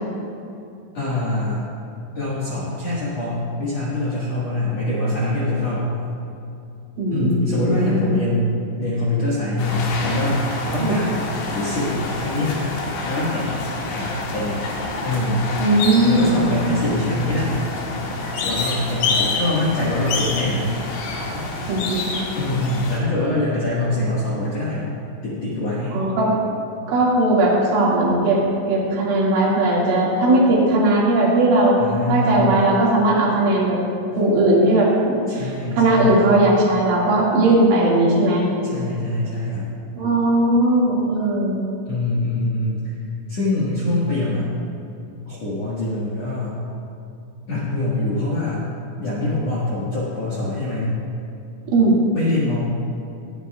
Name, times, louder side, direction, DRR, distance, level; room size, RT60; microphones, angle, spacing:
voice 1, 0.9-1.7 2.1-5.9 7.1-12.5 13.0-13.5 13.9-14.6 15.0-15.4 16.0-17.6 18.4-20.7 21.3-21.4 22.3-24.9 25.2-26.0 31.8-32.6 35.3-36.3 38.7-39.7 41.9-43.0 43.3-44.5 45.3-46.6 47.5-48.6 49.0-51.0 52.1-52.6, left 1 dB, 55° left, -9 dB, 1.8 m, -24 dB
voice 2, 7.0-8.1 10.8-11.0 15.6-16.4 21.7-22.2 25.9-26.3 26.9-28.4 28.7-31.8 32.1-33.8 34.2-35.5 35.8-38.4 40.0-41.6 51.7-52.0, right 2 dB, 80° right, -5 dB, 4.6 m, -18 dB
sound 1, 9.6-23.0, left 3 dB, 75° left, 3.7 m, -27 dB
22.0 x 9.7 x 2.4 m, 2.7 s
omnidirectional pair, 5.5 m